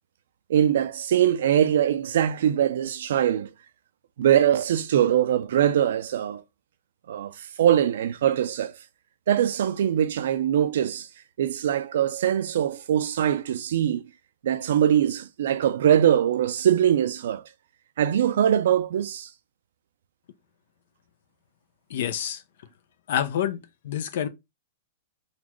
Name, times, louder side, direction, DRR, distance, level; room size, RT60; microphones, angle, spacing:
voice 1, 0.5-3.5 4.2-6.4 7.1-8.7 9.3-11.1 11.4-14.0 14.4-17.4 18.0-19.3, right 10 dB, 70° right, 0.4 m, -22 dB
voice 2, 21.9-22.4 23.1-24.3, left 10 dB, 65° left, 0.6 m, -28 dB
4.0 x 2.3 x 3.0 m
hypercardioid pair, 120°, 0 cm